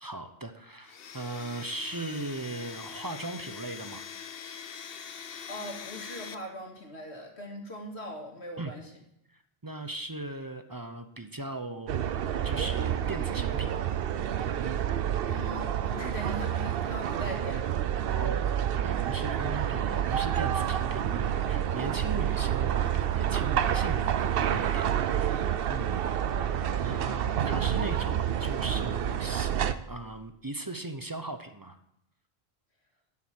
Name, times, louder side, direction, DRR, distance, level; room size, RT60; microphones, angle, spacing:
voice 1, 0.0-4.0 8.6-8.7 9.6-11.9 12.4-13.9 18.0-26.1 26.8-29.5 29.9-31.8, right 2 dB, 25° right, 8 dB, 0.6 m, -38 dB
Domestic sounds home sounds, 0.8-6.3, left 7 dB, 65° left, 1.0 m, -43 dB
voice 2, 5.5-8.9 15.3-18.0 26.3-27.2, equal, 85° left, 1 dB, 2.5 m, -41 dB
sound 1, 11.9-29.7, right 10 dB, 65° right, 0.8 m, -28 dB
10.5 x 7.5 x 7.6 m, 0.78 s
omnidirectional pair, 1.1 m